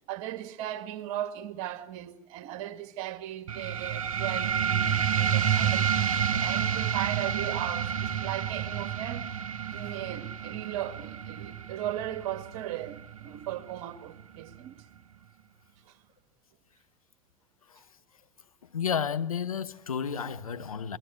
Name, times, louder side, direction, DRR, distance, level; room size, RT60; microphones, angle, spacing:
voice 1, 0.1-9.4 9.7-14.8 15.9-16.0, right 12 dB, 60° right, 1.9 m, -37 dB
sound 1, 3.5-14.5, right 8 dB, 75° right, 1.1 m, -30 dB
voice 2, 18.6-21.0, left 7 dB, 80° left, 1.0 m, -32 dB
26.5 x 21.0 x 9.3 m
figure-of-eight pair, 70°, 18 cm